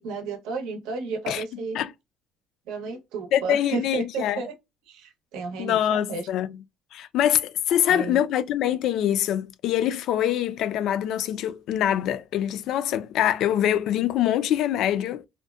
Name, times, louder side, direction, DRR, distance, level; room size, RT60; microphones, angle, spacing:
voice 1, 0.0-1.8 2.7-4.5 4.9-6.3 7.8-8.2, right 4 dB, 85° right, 0.7 m, -32 dB
voice 2, 3.3-4.4 5.6-6.5 6.9-15.2, left 11 dB, 60° left, 0.3 m, -24 dB
2.6 x 2.1 x 2.2 m
cardioid pair, 150°, 0 cm